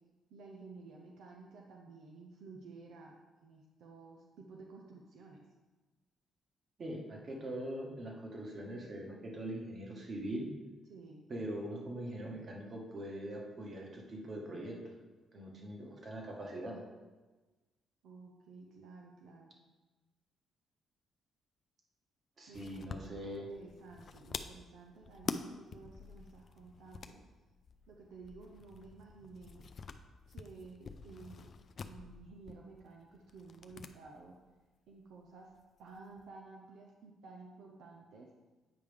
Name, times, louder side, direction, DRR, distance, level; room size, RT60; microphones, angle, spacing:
voice 1, 0.3-5.4 10.9-11.2 18.0-19.5 22.5-27.2 27.9-29.7 30.3-31.6 31.8-34.4 34.9-35.5 35.8-38.3, right 4 dB, 80° right, 0 dB, 0.7 m, -53 dB
voice 2, 6.8-10.5 11.3-14.9 15.3-16.8 22.4-23.5, right 1 dB, 45° right, -1 dB, 1.6 m, -42 dB
sound 1, 22.5-33.9 34.2-34.3 35.5-36.2, left 5 dB, 50° left, 0.4 m, -47 dB
8.7 x 4.8 x 3.5 m, 1.2 s
cardioid pair, 90°, 0 cm